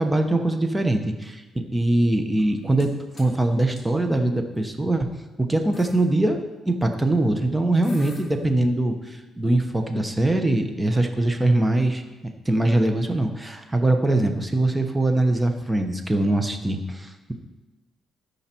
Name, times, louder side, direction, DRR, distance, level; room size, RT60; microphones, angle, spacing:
voice 1, 0.0-1.4 1.7-2.9 3.1-5.1 5.4-6.4 6.6-12.0 12.4-17.3, right 1 dB, 15° right, 6 dB, 1.1 m, -22 dB
sound 1, 2.4-2.9 3.2-3.4 3.8-3.9 4.7-4.9 5.3-5.4 5.7-6.0 7.4-7.5 7.8-8.3, left 3 dB, 45° left, 2.6 m, -46 dB
13.5 x 5.7 x 4.6 m, 1.2 s
cardioid pair, 90°, 0 cm